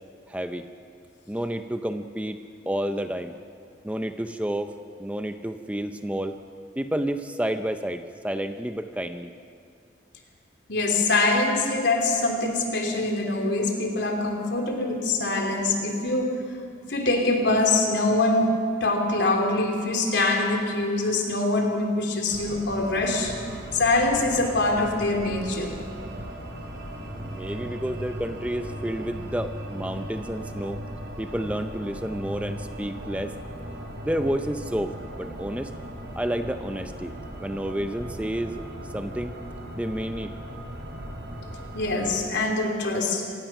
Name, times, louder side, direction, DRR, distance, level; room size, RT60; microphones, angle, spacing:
voice 1, 0.3-0.7 1.3-2.4 2.7-3.3 3.8-6.4 6.8-9.3 27.2-30.8 31.2-33.3 34.0-35.7 36.2-37.1 37.4-38.6 38.9-39.4 39.7-40.3, right 1 dB, 5° right, 8 dB, 0.6 m, -30 dB
voice 2, 10.7-16.4 16.9-18.5 18.8-23.3 23.7-25.7 41.7-43.2, left 2 dB, 70° left, 1 dB, 3.3 m, -24 dB
sound 1, 22.3-42.2, right 1 dB, 65° right, 3.3 m, -38 dB
26.5 x 18.0 x 6.0 m, 2.3 s
head